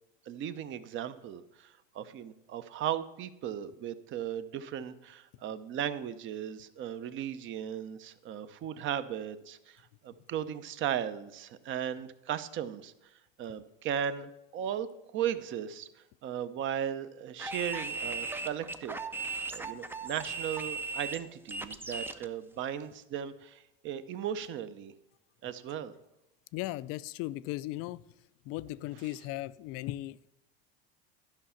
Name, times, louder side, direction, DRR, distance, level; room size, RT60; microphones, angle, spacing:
voice 1, 0.3-12.9 13.4-14.9 15.1-15.9 16.2-19.0 19.5-24.9 25.4-25.9, right 9 dB, 40° right, 13 dB, 0.7 m, -36 dB
sound 1, 17.4-22.2, right 4 dB, 5° right, 0.5 m, -37 dB
voice 2, 26.5-28.0 28.5-30.3, left 16 dB, 50° left, 17 dB, 0.4 m, -37 dB
12.0 x 5.6 x 5.7 m, 0.89 s
supercardioid pair, 110°, 30 cm